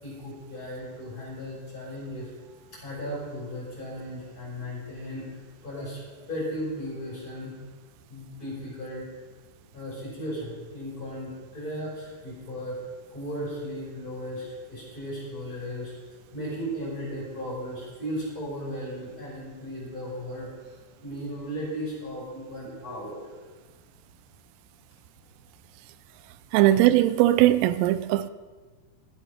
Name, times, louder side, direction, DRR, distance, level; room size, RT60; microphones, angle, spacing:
voice 1, 0.0-7.5 8.1-9.1 9.7-12.8 13.1-23.3, equal, 20° left, 5.1 m, -36 dB
voice 2, 26.5-28.3, right 14 dB, 90° right, 3.2 m, -20 dB
14.0 x 8.3 x 6.3 m
omnidirectional pair, 5.8 m